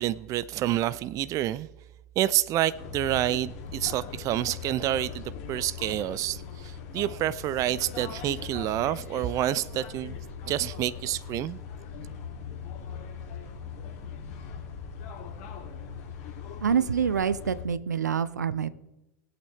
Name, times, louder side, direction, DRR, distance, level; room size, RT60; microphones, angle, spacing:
voice 1, 0.0-1.7 2.2-10.2 10.4-11.6, right 13 dB, 40° right, 0.5 m, -28 dB
sound 1, 2.7-17.6, left 6 dB, 55° left, 3.2 m, -40 dB
voice 2, 16.6-18.7, right 7 dB, 90° right, 0.6 m, -26 dB
20.0 x 8.6 x 3.5 m
hypercardioid pair, 95°, 9 cm